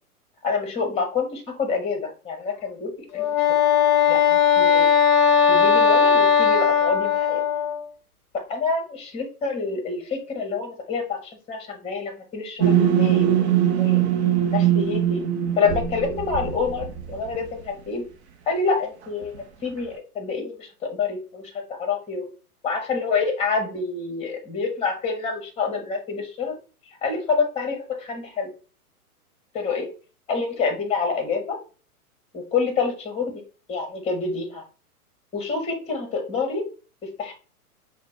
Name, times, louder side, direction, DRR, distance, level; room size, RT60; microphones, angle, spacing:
voice 1, 0.4-3.3 4.1-4.9 5.5-7.4 8.5-14.0 14.5-15.2 15.6-18.0 18.5-19.3 19.6-22.3 22.6-26.6 27.0-28.5 29.5-29.9 30.3-31.6 32.3-33.4 33.7-34.6 35.3-36.6 37.2-37.3, left 4 dB, 15° left, 4 dB, 1.0 m, -27 dB
Wind instrument woodwind instrument, 3.1-7.8, left 6 dB, 30° left, 0.6 m, -18 dB
sound 1, 12.6-17.4, right 10 dB, 45° right, 0.6 m, -21 dB
5.6 x 2.2 x 2.6 m, 0.35 s
figure-of-eight pair, 110°, 46 cm